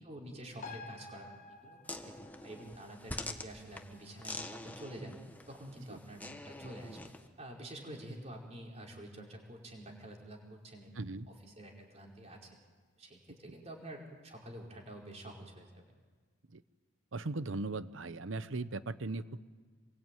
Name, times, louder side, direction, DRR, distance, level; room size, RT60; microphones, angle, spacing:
voice 1, 0.0-2.1 2.4-5.2 5.5-7.0 7.4-12.6 13.0-15.7, right 1 dB, 35° right, -1 dB, 5.0 m, -48 dB
sound 1, 0.6-7.6 7.9-8.0, left 3 dB, 40° left, 1.5 m, -54 dB
sound 2, 1.9-7.3, left 2 dB, 10° left, 1.3 m, -46 dB
voice 2, 11.0-11.3 16.5-16.6 17.1-19.5, right 3 dB, 75° right, 14 dB, 0.9 m, -38 dB
27.0 x 22.5 x 9.2 m, 1.5 s
head